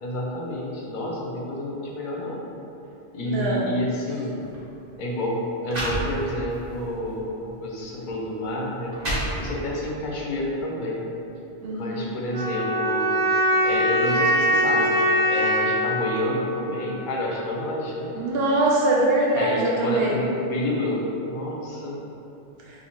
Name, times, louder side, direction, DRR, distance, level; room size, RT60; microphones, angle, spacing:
voice 1, 0.0-2.4 3.1-4.3 5.0-5.4 5.6-9.0 9.4-11.1 11.7-13.1 13.6-18.1 19.3-22.0, left 1 dB, 55° left, -3 dB, 0.7 m, -29 dB
voice 2, 3.2-3.7 11.6-12.1 18.1-20.1, right 1 dB, 70° right, -4 dB, 0.9 m, -23 dB
sound 1, 4.4-4.6 5.3-5.4 5.6-6.6 7.1-7.3 8.1-8.2 8.7-9.8, equal, 45° right, 0.9 m, -29 dB
sound 2, 12.3-17.3, equal, 90° right, 1.3 m, -23 dB
2.8 x 2.5 x 4.3 m, 2.8 s
omnidirectional pair, 1.1 m